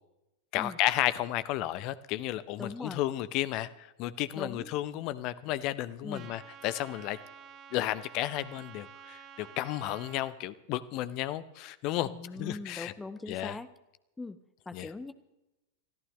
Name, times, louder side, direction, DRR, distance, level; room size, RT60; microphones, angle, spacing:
voice 1, 0.5-7.2 7.7-12.1 12.4-12.9 13.3-13.6 14.7-14.9, left 14 dB, 40° left, 15 dB, 0.8 m, -33 dB
voice 2, 2.6-3.0 4.3-4.7 6.0-6.3 12.1-13.7 14.2-14.4 14.7-15.1, left 3 dB, 10° left, 11 dB, 1.1 m, -41 dB
Trumpet, 6.1-10.3, right 8 dB, 35° right, 1.5 m, -50 dB
29.5 x 14.0 x 3.2 m, 0.95 s
figure-of-eight pair, 90°, 0 cm